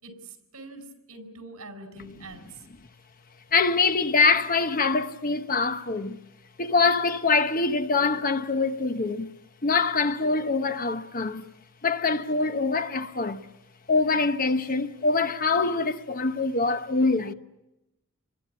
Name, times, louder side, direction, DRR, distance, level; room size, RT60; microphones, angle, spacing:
voice 1, 0.0-2.7, right 2 dB, 75° right, 4.9 m, -44 dB
voice 2, 3.5-6.2 6.6-9.3 9.6-11.4 11.8-13.4 13.9-17.3, left 4 dB, 40° left, 0.9 m, -24 dB
27.0 x 21.0 x 8.5 m
head